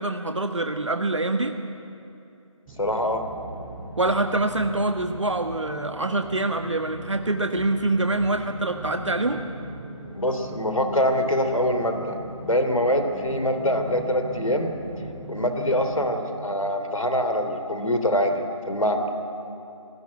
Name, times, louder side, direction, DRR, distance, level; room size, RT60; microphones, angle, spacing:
voice 1, 0.0-1.5 4.0-9.4, right 2 dB, 60° right, 6 dB, 1.4 m, -25 dB
sound 1, 2.7-16.1, right 1 dB, 5° right, 0.9 m, -39 dB
voice 2, 2.8-3.2 10.1-14.7 15.3-19.1, equal, 75° left, 6 dB, 3.0 m, -24 dB
19.5 x 16.5 x 9.5 m, 2.7 s
figure-of-eight pair, 160°, 17 cm